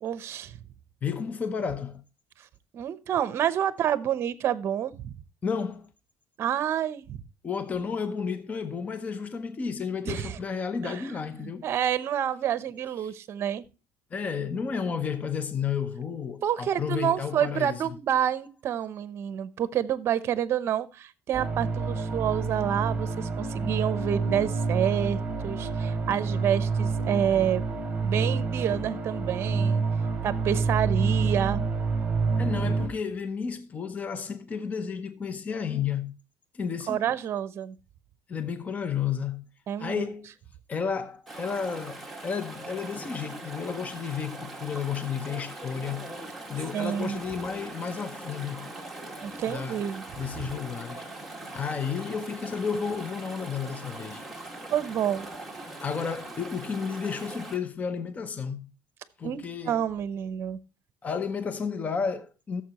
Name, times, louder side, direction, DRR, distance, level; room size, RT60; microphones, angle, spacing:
voice 1, 0.0-0.6 2.7-5.2 6.4-7.2 10.0-10.4 10.8-13.6 16.4-27.6 28.0-29.8 30.2-31.6 36.9-37.8 39.7-40.0 46.7-47.2 49.2-50.0 50.4-50.5 54.7-55.3 59.2-60.6, right 9 dB, 45° right, 0.8 m, -28 dB
voice 2, 1.0-2.0 5.4-5.9 7.4-11.7 13.0-13.1 14.1-17.8 32.4-36.2 36.5-37.1 38.3-39.5 39.8-40.3 40.7-46.1 46.5-48.7 49.5-49.8 50.2-51.1 51.5-54.2 55.8-58.7 59.2-59.8 61.0-62.6, left 6 dB, 25° left, 0.7 m, -32 dB
sound 1, 21.3-32.9, right 4 dB, 20° right, 2.2 m, -28 dB
Chatter / Stream, 41.3-57.6, right 2 dB, ahead, 2.0 m, -41 dB
14.5 x 7.1 x 3.0 m
cardioid pair, 140°, 6 cm